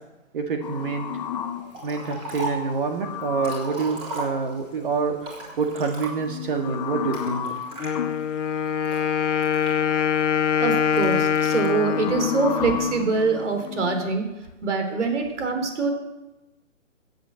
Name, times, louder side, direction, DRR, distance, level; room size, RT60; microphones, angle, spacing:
voice 1, 0.3-1.1 1.6-5.2 5.6-7.5, right 5 dB, 40° right, 4 dB, 1.7 m, -27 dB
sound 1, 0.6-3.9 6.0-8.2 9.6-10.2 10.7-14.1, left 8 dB, 30° left, 0.9 m, -33 dB
Liquid, 1.7-2.7 3.2-4.7 5.2-6.4 7.1-7.9 8.5-10.2 11.0-11.7, right 1 dB, 15° right, 3.4 m, -36 dB
Wind instrument woodwind instrument, 7.8-13.5, left 8 dB, 65° left, 1.2 m, -24 dB
voice 2, 10.6-14.3 14.6-15.9, right 4 dB, 60° right, 5 dB, 4.2 m, -24 dB
15.5 x 8.4 x 7.6 m, 1.0 s
hypercardioid pair, 155°, 39 cm